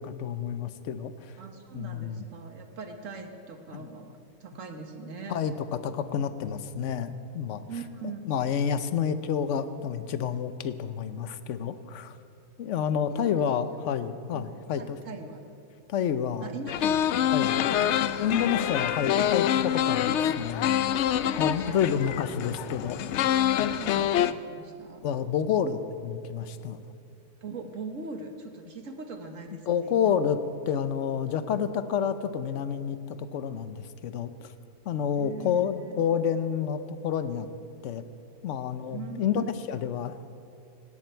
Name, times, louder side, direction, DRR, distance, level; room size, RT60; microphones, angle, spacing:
voice 1, 0.0-1.4 1.7-2.2 3.7-3.9 5.3-7.6 8.2-12.2 12.6-15.0 15.9-16.5 17.3-17.6 18.2-20.7 21.4-23.0 25.0-26.8 29.7-30.4 30.7-34.5 34.8-37.5 37.8-38.0 38.4-40.2, left 8 dB, 55° left, 12 dB, 1.0 m, -29 dB
voice 2, 1.4-5.4 7.7-8.2 13.1-13.4 14.3-14.5 14.8-15.4 16.4-18.3 21.2-22.0 23.7-25.0 27.4-30.2 35.1-36.0 38.9-39.9, right 3 dB, 55° right, 5 dB, 1.6 m, -41 dB
sound 1, 16.7-24.3, left 10 dB, 80° left, 0.6 m, -26 dB
18.5 x 17.0 x 4.5 m, 2.6 s
omnidirectional pair, 1.7 m